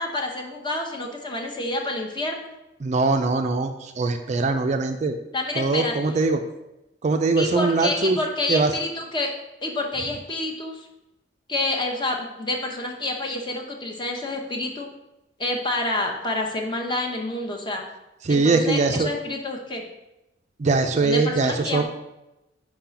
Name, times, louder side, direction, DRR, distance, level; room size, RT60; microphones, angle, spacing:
voice 1, 0.0-2.5 5.3-6.0 7.4-9.3 9.6-10.8 11.5-14.9 15.4-17.8 18.3-19.9 21.0-21.8, left 2 dB, 25° left, 1 dB, 0.8 m, -28 dB
voice 2, 2.8-5.2 5.6-6.4 7.0-8.2 8.5-8.7 18.2-19.1 20.6-21.8, right 3 dB, 40° right, 6 dB, 0.4 m, -22 dB
4.8 x 3.8 x 5.7 m, 0.94 s
head